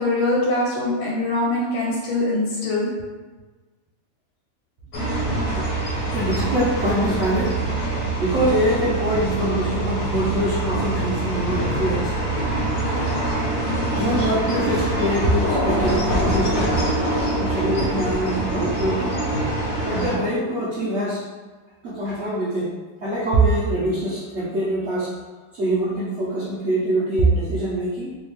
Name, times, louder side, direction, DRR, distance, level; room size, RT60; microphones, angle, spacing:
voice 1, 0.0-2.9, left 2 dB, 85° left, -5 dB, 1.5 m, -23 dB
sound 1, 4.9-20.2, right 1 dB, 60° left, 0.9 m, -24 dB
voice 2, 6.1-12.1 14.0-16.7 17.4-19.2 19.8-21.2 21.8-25.1 25.5-28.1, right 1 dB, 60° right, -10 dB, 0.7 m, -24 dB
3.3 x 2.3 x 3.1 m, 1.3 s
omnidirectional pair, 2.2 m